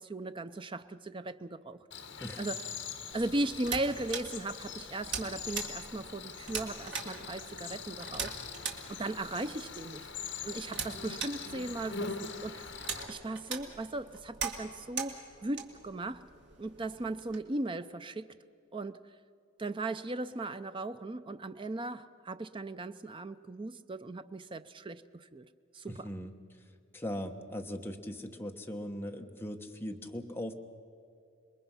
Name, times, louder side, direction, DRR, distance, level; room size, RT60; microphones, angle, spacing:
voice 1, 0.0-1.8 2.4-2.7 3.1-8.3 8.9-10.1 10.4-12.7 13.1-16.2 16.6-18.3 18.7-19.1 19.6-25.5 25.7-26.1, right 2 dB, 25° right, 11 dB, 0.5 m, -37 dB
Cricket, 1.9-13.0, left 5 dB, 60° left, 1.6 m, -43 dB
sound 1, 3.1-17.4, right 5 dB, 60° right, 2.2 m, -42 dB
voice 2, 25.9-26.3 26.9-30.5, equal, 10° left, 3 dB, 1.1 m, -39 dB
27.5 x 21.5 x 5.6 m, 2.5 s
head